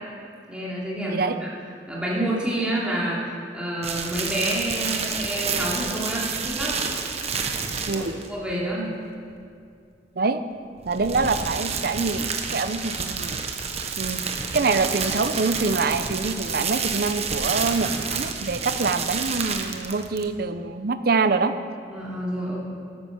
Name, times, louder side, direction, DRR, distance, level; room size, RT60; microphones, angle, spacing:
voice 1, 0.5-1.5 1.9-6.8 7.9-8.9 21.9-22.6, right 1 dB, 5° right, -6 dB, 3.0 m, -28 dB
voice 2, 1.0-1.4 7.9-8.1 10.2-10.4 10.8-13.3 14.0-14.2 14.5-21.5, right 4 dB, 55° right, 11 dB, 0.6 m, -25 dB
sound 1, 3.8-8.3 10.8-20.3, right 5 dB, 35° right, 1.0 m, -29 dB
13.0 x 9.8 x 6.2 m, 2.4 s
head